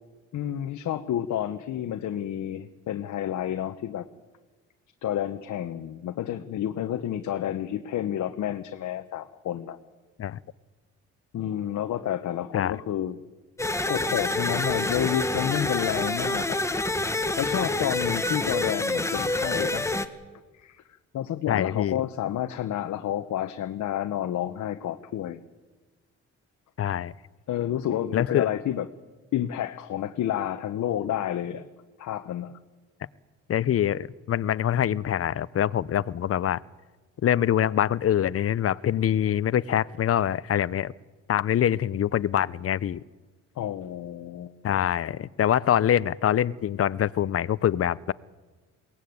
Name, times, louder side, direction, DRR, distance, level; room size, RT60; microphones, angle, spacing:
voice 1, 0.3-4.1 5.0-9.8 11.3-13.2 13.8-16.9 17.4-19.9 20.5-25.4 27.5-28.9 29.3-31.6 32.0-32.5 43.6-44.5, left 11 dB, 70° left, 8 dB, 1.1 m, -30 dB
sound 1, 13.6-20.1, left 2 dB, 10° left, 1.4 m, -27 dB
voice 2, 21.5-22.0 26.8-27.1 28.1-28.5 33.5-36.6 37.2-40.9 41.3-43.0 44.6-48.1, left 10 dB, 50° left, 20 dB, 0.7 m, -24 dB
21.5 x 18.5 x 9.5 m, 1.3 s
cardioid pair, 90°, 30 cm